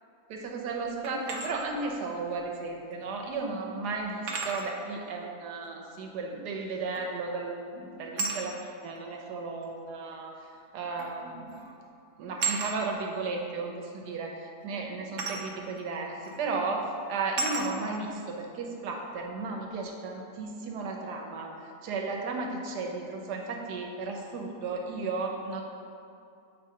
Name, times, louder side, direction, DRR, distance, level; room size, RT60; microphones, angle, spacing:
voice 1, 0.3-8.6 8.8-10.3 10.7-11.5 12.2-14.4 14.6-16.8 17.1-21.5 21.8-25.6, right 3 dB, 85° right, 1 dB, 1.3 m, -34 dB
sound 1, 1.0-1.5 3.0-3.1 4.3-4.7 6.9-7.3 8.2-8.4 9.6-9.7 11.0-11.2 11.5-11.7 12.4-12.7 15.2-15.4 16.2-16.4 17.4-17.7, right 4 dB, 60° right, 0.9 m, -32 dB
7.7 x 4.7 x 2.8 m, 2.6 s
omnidirectional pair, 1.7 m